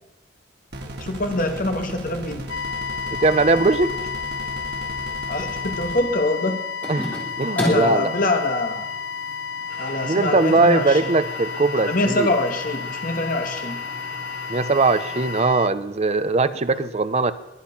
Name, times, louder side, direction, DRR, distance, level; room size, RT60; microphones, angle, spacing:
sound 1, 0.7-6.0, right 1 dB, 50° right, 1.9 m, -36 dB
voice 1, 1.0-2.4 5.3-6.6 7.5-8.8 9.8-11.1 11.7-13.8, left 2 dB, 40° left, 4 dB, 1.6 m, -24 dB
sound 2, 2.5-15.7, left 6 dB, 65° left, 0.6 m, -32 dB
voice 2, 3.1-3.9 6.9-8.1 10.0-12.3 14.5-17.3, right 3 dB, 30° right, 13 dB, 0.5 m, -20 dB
sound 3, 6.8-15.4, equal, 5° left, 3.0 m, -35 dB
21.0 x 10.5 x 5.8 m, 0.99 s
head